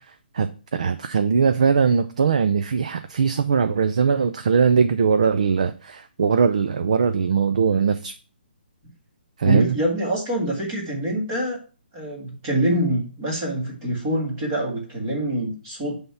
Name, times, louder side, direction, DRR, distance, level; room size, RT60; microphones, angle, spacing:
voice 1, 0.3-8.1 9.4-9.8, right 6 dB, 40° right, 10 dB, 0.5 m, -20 dB
voice 2, 9.4-11.6 11.9-16.0, right 1 dB, 15° right, -2 dB, 1.6 m, -25 dB
9.5 x 3.5 x 5.7 m, 0.36 s
hypercardioid pair, 175°, 5 cm